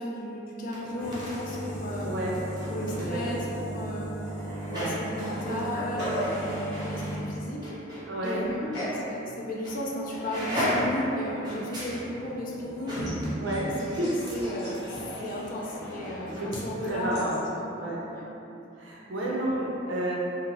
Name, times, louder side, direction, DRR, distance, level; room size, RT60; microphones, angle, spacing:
voice 1, 0.0-2.1 2.7-4.1 4.7-7.7 8.2-13.1 13.6-15.0 15.2-18.3 19.2-19.4, left 1 dB, 45° left, -3 dB, 0.4 m, -35 dB
sound 1, 0.6-8.4 8.7-8.9 9.6-9.8 10.1-16.6 16.9-17.0, equal, 20° right, 0.6 m, -34 dB
voice 2, 2.0-2.4 3.0-3.4 4.7-5.0 8.1-8.7 13.4-14.1 16.4-16.5 16.8-17.3 17.8-18.0 18.8-20.2, right 1 dB, 65° right, -4 dB, 0.5 m, -31 dB
sound 2, 2.6-3.3 3.6-3.7 4.6-4.7 5.3-6.5 8.7-9.1 9.5-9.9 10.5-10.9 11.4-11.6 13.0-17.4, equal, 60° left, 0.8 m, -38 dB
2.8 x 2.2 x 3.0 m, 2.9 s
head